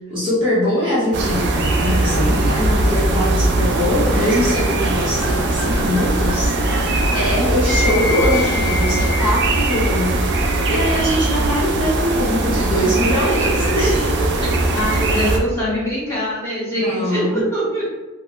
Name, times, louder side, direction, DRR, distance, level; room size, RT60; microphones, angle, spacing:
voice 1, 0.1-6.5 7.1-10.3 10.7-13.5 13.7-13.9 14.4-14.5 16.7-17.5, equal, 25° right, -11 dB, 0.8 m, -22 dB
sound 1, 1.1-15.4, right 2 dB, 60° right, 0.4 m, -20 dB
voice 2, 1.8-2.5 13.4-13.9 14.7-17.9, equal, 15° left, -9 dB, 1.2 m, -24 dB
sound 2, 4.1-9.5, left 2 dB, 50° left, 0.6 m, -28 dB
2.3 x 2.1 x 3.5 m, 1.2 s
head